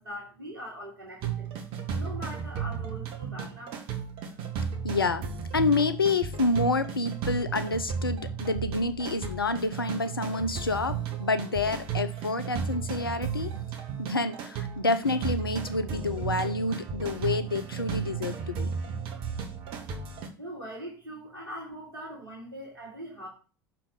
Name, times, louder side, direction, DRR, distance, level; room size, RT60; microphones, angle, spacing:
voice 1, 0.0-1.5 1.9-3.8 4.3-4.4 20.4-23.3, equal, 80° right, -3 dB, 2.2 m, -41 dB
sound 1, 1.2-20.3, right 6 dB, 50° right, 1.6 m, -34 dB
voice 2, 4.8-5.2 5.5-13.5 14.0-18.7, left 3 dB, 85° left, 11 dB, 0.7 m, -28 dB
6.1 x 4.6 x 6.5 m, 0.36 s
figure-of-eight pair, 70°, 12 cm